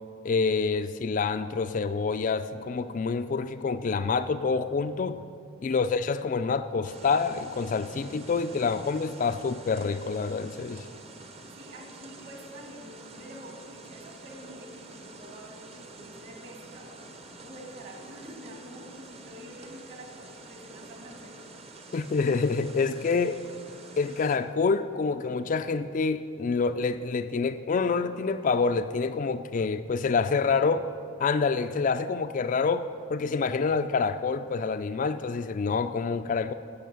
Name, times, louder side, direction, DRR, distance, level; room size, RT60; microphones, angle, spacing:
voice 1, 0.2-5.2 5.6-10.8 21.9-23.4 24.0-30.8 31.2-36.5, left 4 dB, 40° left, 10 dB, 0.3 m, -27 dB
voice 2, 5.6-6.0 11.4-17.0 17.4-21.4 30.2-30.5, right 1 dB, 50° right, 1 dB, 2.1 m, -47 dB
sound 1, 6.8-24.4, right 2 dB, 30° right, 0.8 m, -47 dB
12.0 x 8.5 x 6.9 m, 2.4 s
head